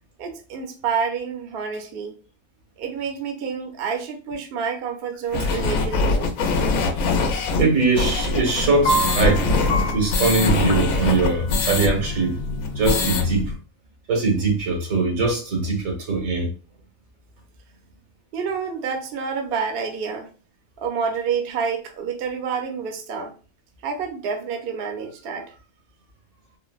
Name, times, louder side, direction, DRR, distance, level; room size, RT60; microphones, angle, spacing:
voice 1, 0.2-2.1 2.8-6.4 18.3-20.3 20.8-23.3 23.8-25.5, right 6 dB, 60° right, 0.7 m, -28 dB
sound 1, 5.3-11.9 12.2-12.3 12.6-13.2, left 3 dB, 90° left, 1.0 m, -22 dB
voice 2, 7.6-12.3 12.7-13.5 14.1-16.5, right 3 dB, 85° right, 1.4 m, -22 dB
sound 2, 8.5-13.6, equal, 60° left, 0.8 m, -28 dB
3.7 x 2.0 x 2.3 m
omnidirectional pair, 1.4 m